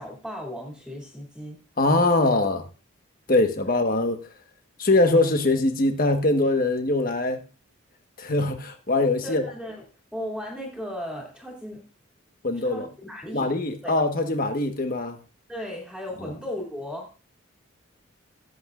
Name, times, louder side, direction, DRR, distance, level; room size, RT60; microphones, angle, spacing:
voice 1, 0.0-1.6 9.2-9.8 10.1-11.9 12.5-13.5 13.8-14.0 15.5-17.1, left 1 dB, 5° left, 2.5 m, -36 dB
voice 2, 1.8-2.6 3.3-4.2 4.8-7.4 8.2-9.4 12.4-12.9 13.3-15.2, left 2 dB, 40° left, 1.3 m, -22 dB
17.5 x 8.0 x 2.4 m
head